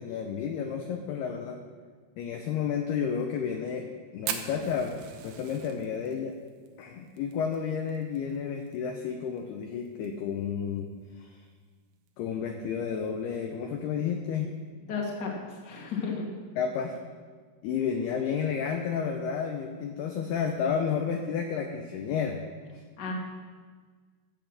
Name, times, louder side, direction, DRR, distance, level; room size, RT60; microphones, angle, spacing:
voice 1, 0.0-1.6 2.2-3.9 4.1-5.0 5.2-6.4 6.8-10.9 11.2-11.3 12.2-14.6 16.6-16.9 17.6-22.4 22.7-22.8, left 7 dB, 85° left, 3 dB, 2.3 m, -31 dB
Fire, 4.3-8.8 9.0-9.1 9.4-9.5 9.9-10.3 10.8-10.9 11.9-12.1, right 9 dB, 80° right, 3.4 m, -39 dB
voice 2, 14.9-16.2 23.0-23.1, left 5 dB, 40° left, -2 dB, 1.4 m, -33 dB
14.0 x 8.0 x 6.5 m, 1.5 s
omnidirectional pair, 5.7 m